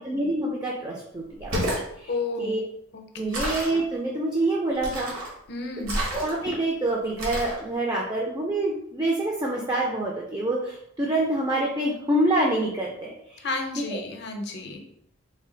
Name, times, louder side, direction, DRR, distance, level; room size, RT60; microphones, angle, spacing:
voice 1, 0.0-1.6 2.0-2.1 2.4-2.6 3.2-5.1 5.8-5.9 6.1-13.5 13.9-14.0, right 1 dB, 20° right, -2 dB, 0.4 m, -26 dB
sound 1, 1.3-1.9 3.3-3.8 4.8-5.3 5.8-6.5 7.2-7.6, right 1 dB, 75° right, 1.1 m, -29 dB
voice 2, 2.1-2.6 2.9-3.3 5.5-6.0 13.4-14.8, left 3 dB, 50° left, 3 dB, 0.5 m, -32 dB
3.2 x 2.3 x 3.8 m, 0.74 s
head